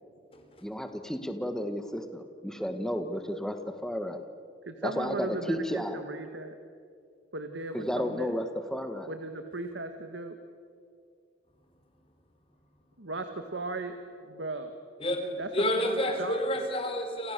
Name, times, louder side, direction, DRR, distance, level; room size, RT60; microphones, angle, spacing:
voice 1, 0.6-4.2 4.8-6.0 7.7-9.1, equal, 5° left, 7 dB, 1.6 m, -33 dB
voice 2, 4.7-6.5 7.3-8.3 9.1-10.3 13.0-14.0 14.3-14.7 15.4-16.6, right 2 dB, 85° right, 7 dB, 1.8 m, -37 dB
voice 3, 15.0-17.3, equal, 30° left, 5 dB, 4.0 m, -29 dB
30.0 x 28.0 x 6.9 m, 2.4 s
head